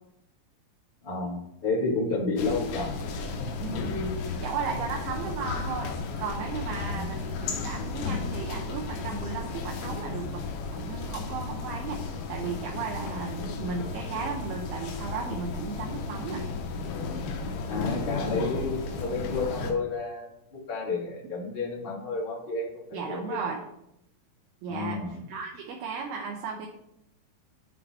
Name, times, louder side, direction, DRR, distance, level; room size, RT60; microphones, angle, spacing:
voice 1, 1.0-2.9 3.4-3.8 4.7-4.8 6.9-7.1 17.7-20.3 20.7-23.4 24.7-25.3, left 3 dB, 50° left, -5 dB, 0.6 m, -31 dB
sound 1, 2.4-19.7, left 4 dB, 85° left, 3.2 m, -34 dB
voice 2, 3.6-5.9 6.2-10.5 10.7-16.5 22.9-23.7 24.6-25.0 25.3-26.7, right 5 dB, 75° right, 1 dB, 2.5 m, -35 dB
10.0 x 3.9 x 4.4 m, 0.81 s
omnidirectional pair, 5.0 m